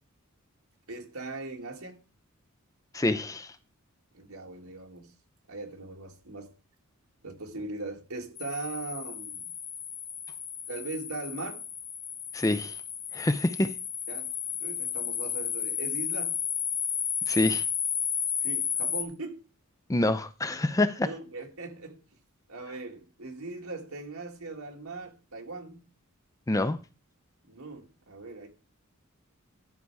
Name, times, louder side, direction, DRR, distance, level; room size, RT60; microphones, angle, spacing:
voice 1, 0.9-2.0 4.1-5.1 5.5-6.5 7.2-9.5 10.7-11.6 14.1-14.3 14.6-16.4 18.4-19.4 21.0-22.0 22.5-25.9 27.4-28.5, right 3 dB, 75° right, 2.1 m, -40 dB
voice 2, 2.9-3.5 12.3-12.8 13.1-13.7 17.3-17.6 19.9-21.1 26.5-26.8, left 2 dB, 15° left, 0.5 m, -26 dB
sound 1, 8.4-19.0, left 8 dB, 35° left, 1.2 m, -33 dB
12.0 x 6.7 x 4.7 m
head